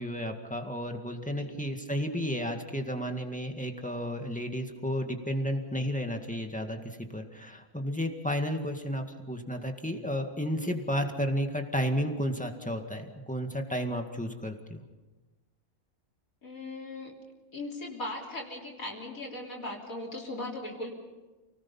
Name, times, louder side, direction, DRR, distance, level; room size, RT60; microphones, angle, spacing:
voice 1, 0.0-14.8, equal, 5° left, 4 dB, 1.9 m, -32 dB
voice 2, 1.3-1.6 16.4-17.1 17.5-20.9, left 1 dB, 70° left, -3 dB, 3.9 m, -38 dB
29.5 x 19.0 x 5.6 m, 1.2 s
omnidirectional pair, 1.5 m